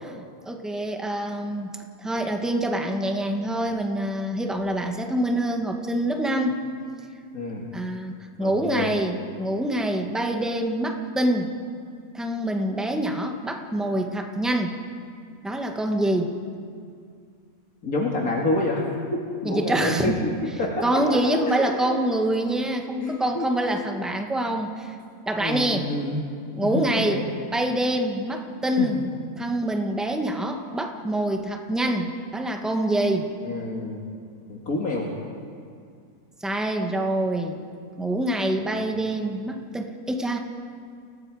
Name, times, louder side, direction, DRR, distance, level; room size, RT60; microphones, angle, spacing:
voice 1, 0.0-6.6 7.7-11.5 12.1-14.8 15.4-16.4 19.4-20.2 20.8-25.0 25.3-25.9 26.5-29.0 29.4-33.3 36.4-37.6 38.0-40.4, right 1 dB, ahead, 3 dB, 1.4 m, -26 dB
voice 2, 7.3-7.7 8.4-8.9 17.8-18.9 19.1-20.3 20.6-21.0 21.5-22.0 23.0-23.8 25.4-26.3 26.7-27.2 28.8-28.9 33.4-34.0 34.5-35.1 38.6-38.8, left 2 dB, 65° left, -2 dB, 2.6 m, -28 dB
30.0 x 18.5 x 4.9 m, 2.2 s
omnidirectional pair, 1.6 m